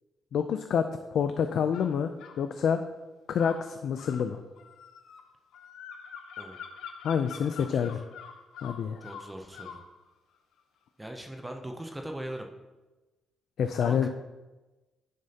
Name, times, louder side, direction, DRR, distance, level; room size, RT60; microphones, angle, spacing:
voice 1, 0.3-2.1 2.4-2.8 3.3-4.4 7.0-8.0 8.6-9.0 13.6-14.1, left 7 dB, 55° left, 8 dB, 0.3 m, -27 dB
sound 1, 1.7-2.4 3.3-9.9, left 7 dB, 80° left, 0.7 m, -45 dB
voice 2, 6.4-6.7 7.5-8.0 9.0-9.8 11.0-12.5 13.8-14.1, right 1 dB, 10° right, 3 dB, 0.5 m, -40 dB
10.5 x 6.4 x 2.8 m, 1.1 s
cardioid pair, 180°, 0 cm